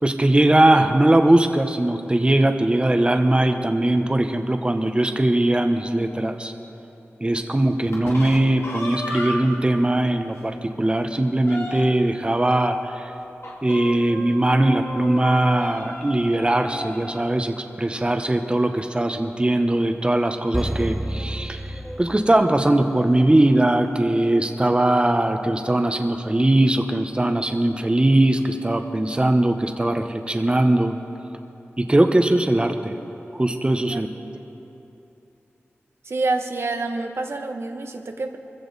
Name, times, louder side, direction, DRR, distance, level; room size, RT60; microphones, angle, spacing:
voice 1, 0.0-6.5 7.2-12.9 13.6-21.6 22.0-30.9 31.8-33.0 33.3-34.1, right 1 dB, 20° right, 6 dB, 1.0 m, -20 dB
sound 1, 7.8-9.6 10.1-10.2 10.5-10.6 10.9-12.1 13.4-17.3, left 1 dB, 75° left, 2.2 m, -34 dB
sound 2, 20.5-22.7 23.0-23.1, right 1 dB, 5° right, 0.6 m, -29 dB
voice 2, 36.1-38.4, right 3 dB, 70° right, 4 dB, 1.0 m, -27 dB
23.0 x 15.0 x 4.1 m, 2.9 s
cardioid pair, 50°, 5 cm